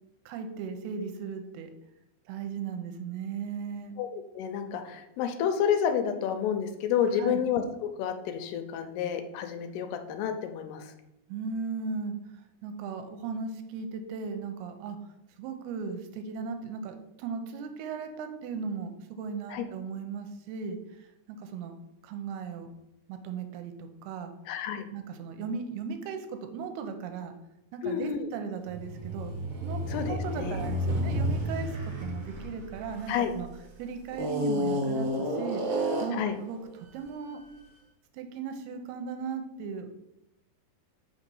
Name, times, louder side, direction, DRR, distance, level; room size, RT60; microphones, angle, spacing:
voice 1, 0.3-1.7 2.3-4.0 7.2-7.4 11.3-15.0 15.4-21.7 22.0-22.7 23.1-24.3 24.9-27.3 27.7-29.3 29.6-33.5 33.8-37.4 38.1-40.0, right 5 dB, 85° right, 6 dB, 2.6 m, -37 dB
voice 2, 4.0-10.9 19.5-19.6 24.5-24.9 27.8-28.3 29.9-30.5 33.1-33.3 36.1-36.4, left 8 dB, 85° left, 7 dB, 2.6 m, -30 dB
sound 1, 28.7-33.5 34.1-36.3, equal, 60° right, 1.7 m, -31 dB
5.8 x 4.1 x 5.4 m, 0.88 s
omnidirectional pair, 4.6 m